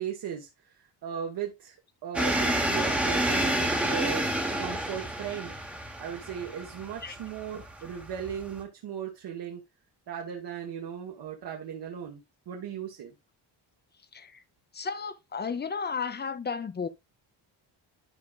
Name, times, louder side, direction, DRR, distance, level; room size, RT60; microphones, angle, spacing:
voice 1, 0.0-1.8 2.0-4.3 4.6-5.5 6.0-9.6 10.1-13.1, right 8 dB, 60° right, 1.3 m, -37 dB
sound 1, 2.1-8.6, right 1 dB, 5° right, 1.0 m, -29 dB
voice 2, 14.7-16.9, left 5 dB, 25° left, 0.6 m, -33 dB
11.5 x 4.8 x 2.3 m
cardioid pair, 145°, 44 cm